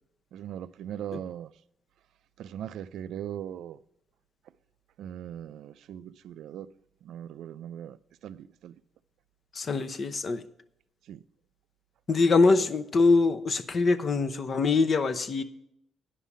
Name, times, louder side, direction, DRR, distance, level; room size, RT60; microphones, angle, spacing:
voice 1, 0.3-1.5 2.4-3.8 5.0-6.7 7.0-8.8 11.0-11.2, right 10 dB, 75° right, 0.3 m, -39 dB
voice 2, 9.5-10.5 12.1-15.4, left 3 dB, 45° left, 0.7 m, -23 dB
10.0 x 5.7 x 8.4 m
cardioid pair, 90°, 0 cm